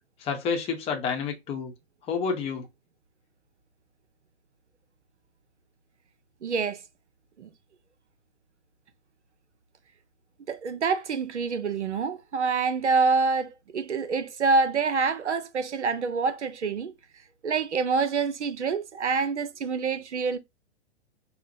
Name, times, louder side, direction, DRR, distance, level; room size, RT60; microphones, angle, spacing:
voice 1, 0.2-1.7 2.1-2.7, left 5 dB, 15° left, 0.7 m, -29 dB
voice 2, 6.4-6.8 7.4-7.5 10.5-16.9 17.4-20.4, right 4 dB, 75° right, 0.7 m, -26 dB
5.6 x 2.0 x 2.7 m
figure-of-eight pair, 110°, 35 cm